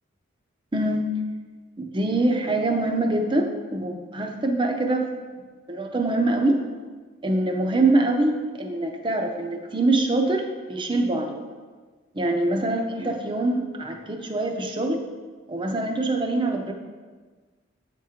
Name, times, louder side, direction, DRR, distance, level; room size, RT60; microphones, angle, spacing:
voice 1, 0.7-1.1 1.8-5.1 5.7-6.6 7.2-11.4 12.1-15.0 15.5-16.7, right 2 dB, 25° right, 3 dB, 0.6 m, -24 dB
8.0 x 3.8 x 4.3 m, 1.4 s
head